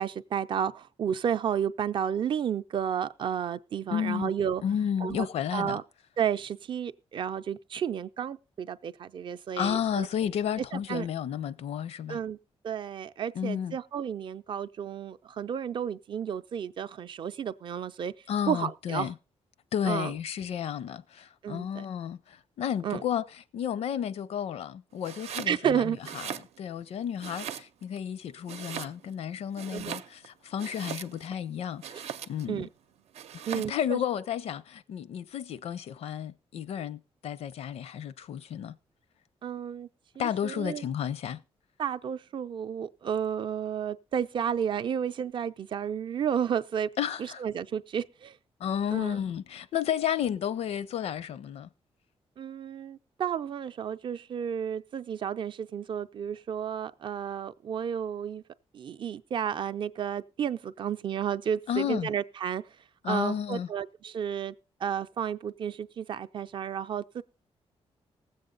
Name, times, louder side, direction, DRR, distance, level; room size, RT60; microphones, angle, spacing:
voice 1, 0.0-4.6 5.0-5.3 5.5-5.8 6.2-10.1 10.7-11.1 12.1-12.4 12.6-18.1 18.5-19.1 19.9-20.1 21.4-21.9 22.8-23.0 25.5-26.0 29.7-30.0 31.9-32.0 32.5-32.7 33.5-34.0 39.4-39.9 40.2-40.8 41.8-46.9 47.2-48.4 48.9-49.2 52.4-58.4 58.7-62.6 63.1-64.5 64.8-67.2, right 8 dB, 50° right, 0.5 m, -32 dB
voice 2, 3.9-4.3 4.6-5.8 9.6-12.2 13.3-13.8 18.3-19.1 19.7-23.2 23.5-32.7 33.5-38.7 40.2-41.4 47.0-47.4 48.6-51.7 61.7-62.1 63.0-63.7, left 9 dB, 75° left, 0.6 m, -32 dB
Domestic sounds home sounds, 25.0-25.6 26.0-26.8 27.2-28.0 28.4-29.2 29.5-31.4 31.8-32.5 33.1-33.8, right 9 dB, 85° right, 0.7 m, -40 dB
19.0 x 7.8 x 3.9 m
wide cardioid pair, 175°, 11 cm